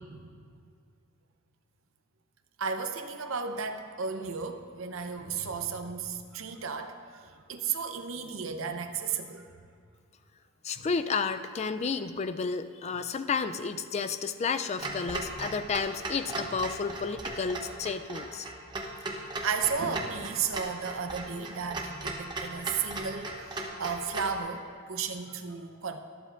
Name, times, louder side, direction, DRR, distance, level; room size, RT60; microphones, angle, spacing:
voice 1, 2.6-9.5 19.1-26.0, right 6 dB, 70° right, 7 dB, 0.7 m, -34 dB
voice 2, 10.6-18.5, left 5 dB, 30° left, 10 dB, 0.3 m, -31 dB
Clock, 14.8-24.4, right 2 dB, 20° right, 0.9 m, -37 dB
23.5 x 7.9 x 2.5 m, 2.2 s
head